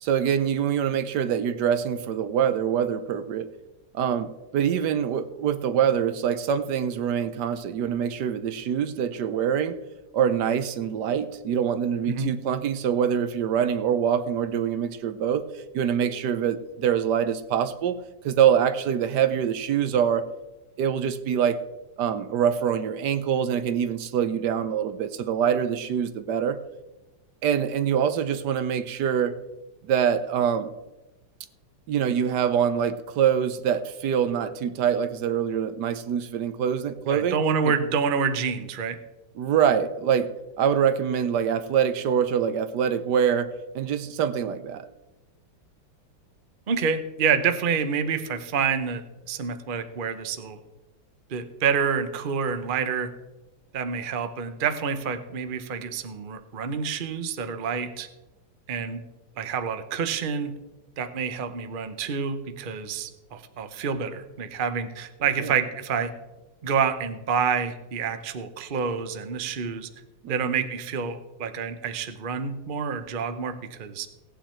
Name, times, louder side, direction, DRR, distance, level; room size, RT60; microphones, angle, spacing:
voice 1, 0.0-3.5 3.9-9.8 10.1-15.5 15.7-18.0 18.2-20.3 20.8-21.6 22.0-26.6 27.4-29.4 29.9-30.7 31.9-37.4 39.4-44.9 65.4-65.5 70.2-70.6, right 8 dB, 65° right, 11 dB, 1.3 m, -25 dB
voice 2, 12.1-12.4 37.1-39.0 46.7-49.0 49.3-50.6 51.3-53.1 53.7-58.1 58.7-59.0 59.4-60.6 61.0-66.1 66.6-69.9 70.3-74.1, right 6 dB, 45° right, 10 dB, 0.7 m, -28 dB
17.5 x 9.2 x 4.4 m, 1.0 s
omnidirectional pair, 2.1 m